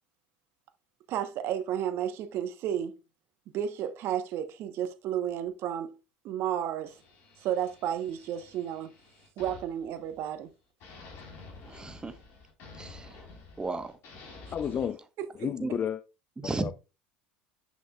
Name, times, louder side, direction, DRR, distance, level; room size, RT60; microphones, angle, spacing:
voice 1, 1.1-3.0 3.5-6.0 6.2-7.0 7.4-8.9 9.4-10.5 15.2-15.5, right 10 dB, 55° right, 1.0 m, -32 dB
sound 1, 6.8-10.5 10.8-14.9, left 3 dB, 60° left, 3.9 m, -50 dB
voice 2, 11.6-12.2 12.7-13.3 13.6-14.0 15.6-15.7 16.4-16.7, right 3 dB, 15° right, 1.0 m, -35 dB
voice 3, 14.5-15.0 15.4-16.0 16.4-16.7, left 8 dB, 35° left, 0.5 m, -31 dB
8.3 x 6.3 x 2.3 m
hypercardioid pair, 75°, 5 cm